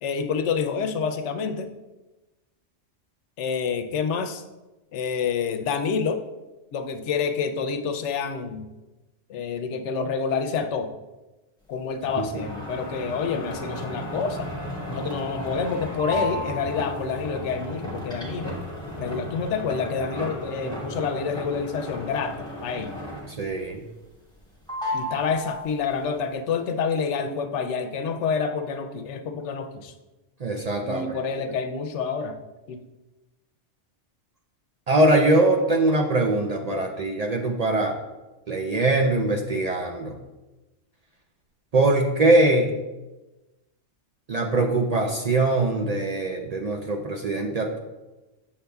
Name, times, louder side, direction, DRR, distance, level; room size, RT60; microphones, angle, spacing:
voice 1, 0.0-1.7 3.4-4.4 4.9-6.2 6.7-8.7 9.3-10.9 11.7-14.5 14.9-18.6 19.0-23.0 24.9-29.9 30.9-32.4 32.7-32.8, left 5 dB, 85° left, 8 dB, 0.9 m, -28 dB
sound 1, 12.0-23.5 23.9-24.4 24.7-26.0, equal, 5° left, 1.2 m, -34 dB
voice 2, 23.3-23.8 30.4-31.2 34.9-38.0 38.5-40.2 41.7-42.8 44.3-47.8, right 2 dB, 50° right, 2 dB, 0.5 m, -22 dB
6.9 x 6.7 x 2.3 m, 1.1 s
omnidirectional pair, 1.2 m